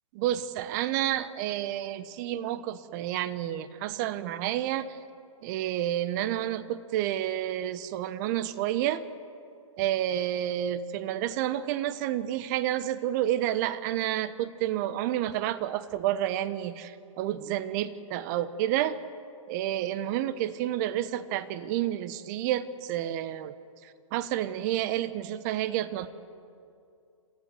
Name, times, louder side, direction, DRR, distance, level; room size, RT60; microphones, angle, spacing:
voice 1, 0.1-5.0 5.4-9.0 9.8-19.0 19.5-23.5 23.8-26.1, right 12 dB, 35° right, 14 dB, 1.1 m, -30 dB
27.5 x 15.5 x 7.8 m, 2.5 s
hypercardioid pair, 135°, 17 cm